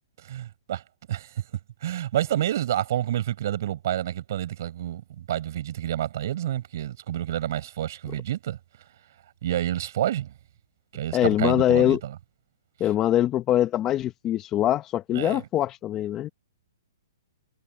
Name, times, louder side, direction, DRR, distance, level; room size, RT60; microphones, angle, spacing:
voice 1, 0.2-0.8 1.1-1.4 1.8-8.6 9.4-10.3 10.9-12.2 15.1-15.4, right 12 dB, 50° right, 7.6 m, -29 dB
voice 2, 11.1-12.0 12.8-16.3, left 12 dB, 20° left, 1.0 m, -23 dB
hypercardioid pair, 155°, 2 cm